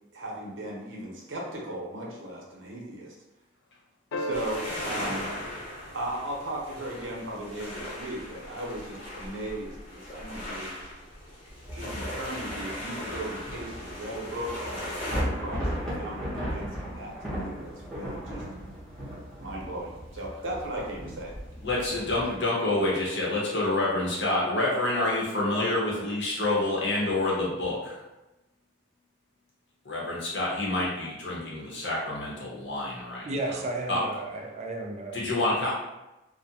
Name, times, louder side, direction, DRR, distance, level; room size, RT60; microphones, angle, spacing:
voice 1, 0.1-3.1 4.2-5.4 5.9-10.8 11.8-18.4 19.4-21.3, right 1 dB, 85° right, -3 dB, 0.7 m, -37 dB
sound 1, 4.1-6.6 8.9-9.0, equal, 90° left, 0.3 m, -38 dB
sound 2, 4.3-15.2, left 1 dB, 35° left, 0.8 m, -38 dB
Thunder / Rain, 11.5-22.4, equal, 5° left, 0.6 m, -36 dB
voice 2, 21.6-28.0 29.8-33.3 33.9-34.0 35.1-35.7, left 2 dB, 65° left, -5 dB, 0.8 m, -27 dB
voice 3, 33.2-35.2, right 2 dB, 35° right, 1 dB, 0.3 m, -33 dB
2.4 x 2.1 x 2.7 m, 0.99 s
head